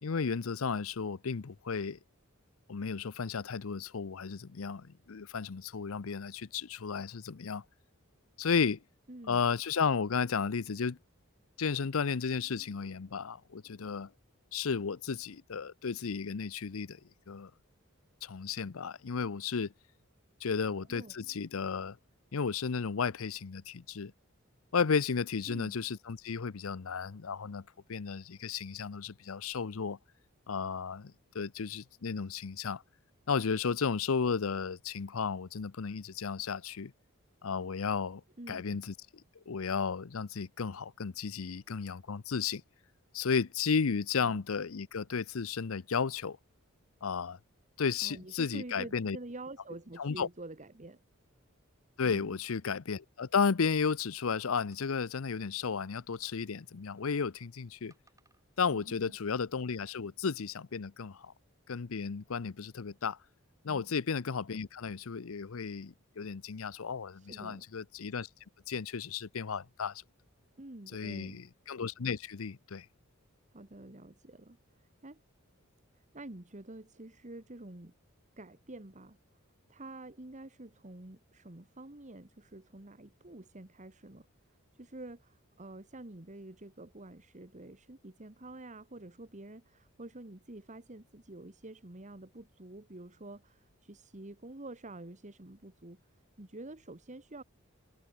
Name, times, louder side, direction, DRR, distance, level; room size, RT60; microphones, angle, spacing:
voice 1, 0.0-2.0 2.7-7.6 8.4-8.8 9.3-11.0 11.6-14.1 14.5-17.0 17.3-17.5 18.2-19.7 20.4-22.0 22.3-24.1 24.7-30.0 30.5-32.8 33.3-36.9 37.4-38.2 38.5-38.9 39.5-42.6 43.1-46.4 47.0-47.4 47.8-49.2 50.0-50.3 52.0-57.9 58.6-61.3 61.7-63.2 63.6-68.3 68.7-70.0 70.9-72.9, left 5 dB, 70° left, 0.6 m, -33 dB
voice 2, 9.1-9.4 20.9-21.1 25.5-25.8 38.4-38.7 44.2-44.4 48.0-51.0 58.7-59.2 63.6-63.9 67.1-67.7 70.6-71.4 73.5-75.2 75.9-77.9 78.4-79.2 79.7-84.3 84.8-96.0 96.4-97.4, right 2 dB, 35° right, 1.8 m, -48 dB
sound 1, 54.6-55.4 55.9-57.4 57.9-58.5 58.9-59.3, right 3 dB, 15° right, 4.5 m, -70 dB
head